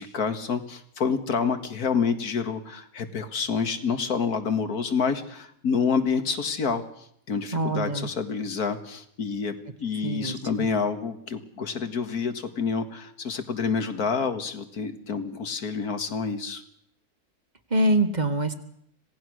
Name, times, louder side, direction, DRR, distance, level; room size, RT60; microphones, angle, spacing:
voice 1, 0.0-9.5 9.8-16.6, left 5 dB, 70° left, 9 dB, 2.2 m, -28 dB
voice 2, 7.5-8.1 10.0-10.7 17.7-18.5, right 1 dB, 30° right, 9 dB, 1.5 m, -25 dB
26.0 x 18.0 x 6.4 m, 0.71 s
omnidirectional pair, 1.7 m